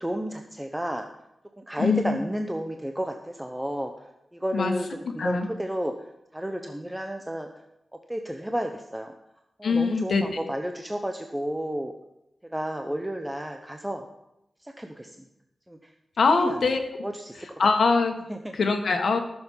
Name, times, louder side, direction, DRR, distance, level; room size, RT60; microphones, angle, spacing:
voice 1, 0.0-1.1 1.6-3.9 4.3-4.9 5.1-5.9 6.3-7.5 8.1-9.1 9.6-11.9 12.5-14.0 14.6-15.1 15.7-15.8 16.3-16.7 17.0-17.4 18.3-18.4, equal, 10° right, 4 dB, 0.8 m, -31 dB
voice 2, 1.8-2.2 4.5-4.7 5.2-5.5 9.6-10.2 16.2-16.8 17.4-18.1 18.5-19.2, left 4 dB, 80° left, 5 dB, 1.5 m, -23 dB
14.5 x 7.1 x 5.7 m, 0.86 s
wide cardioid pair, 105°, 0 cm